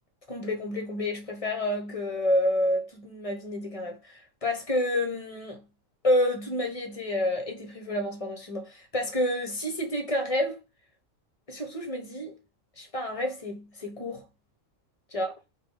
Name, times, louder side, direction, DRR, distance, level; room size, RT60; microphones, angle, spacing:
voice 1, 0.3-5.6 6.0-10.6 11.5-12.4 12.8-14.2 15.1-15.3, left 1 dB, 30° left, 0.8 m, -29 dB
3.7 x 2.5 x 3.8 m
omnidirectional pair, 1.4 m